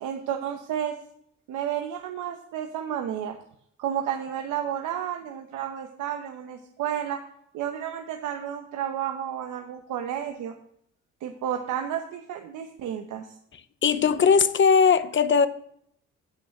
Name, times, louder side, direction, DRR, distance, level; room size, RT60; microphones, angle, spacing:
voice 1, 0.0-1.0 1.5-3.4 3.8-7.2 7.5-10.5 11.2-13.3, right 10 dB, 85° right, 1.0 m, -31 dB
voice 2, 13.8-15.5, left 6 dB, 40° left, 0.8 m, -19 dB
9.3 x 6.3 x 8.2 m
cardioid pair, 90°, 30 cm